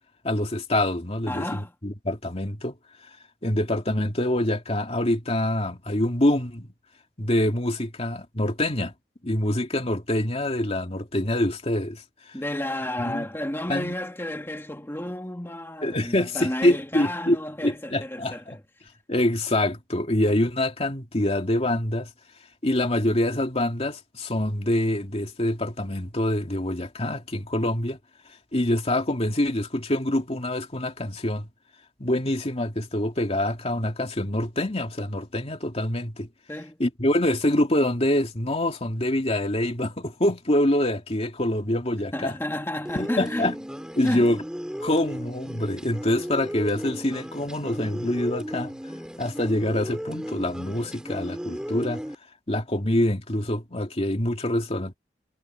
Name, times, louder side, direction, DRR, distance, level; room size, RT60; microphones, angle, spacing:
voice 1, 0.2-2.7 3.4-6.7 7.2-8.9 9.2-12.3 13.0-13.3 13.7-14.0 15.8-17.4 17.6-18.6 19.1-22.1 22.6-28.0 28.5-31.5 32.0-36.3 36.8-42.3 43.0-43.6 44.0-44.4 44.8-48.8 49.2-52.0 52.5-54.9, left 1 dB, 35° left, 2.4 m, -25 dB
voice 2, 1.3-1.7 12.3-18.6 36.5-36.8 42.1-43.5 44.0-44.3, left 1 dB, 15° left, 2.0 m, -31 dB
sound 1, 42.9-52.2, equal, 5° right, 3.9 m, -35 dB
head